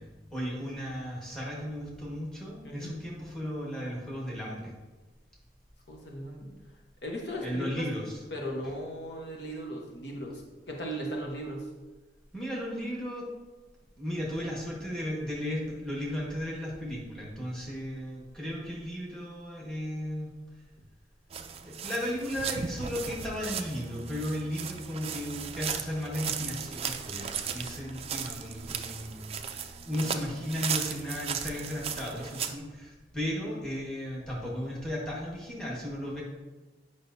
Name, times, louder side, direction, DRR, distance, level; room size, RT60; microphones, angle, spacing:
voice 1, 0.0-4.7 7.4-8.2 12.3-13.3 14.0-20.3 21.6-36.2, equal, 5° left, -4 dB, 1.4 m, -35 dB
voice 2, 5.9-6.5 7.0-7.9 8.3-10.4 10.7-11.7, equal, 65° left, -1 dB, 1.0 m, -37 dB
sound 1, 21.3-32.5, right 7 dB, 30° right, 0.3 m, -36 dB
8.7 x 5.5 x 2.6 m, 1.2 s
head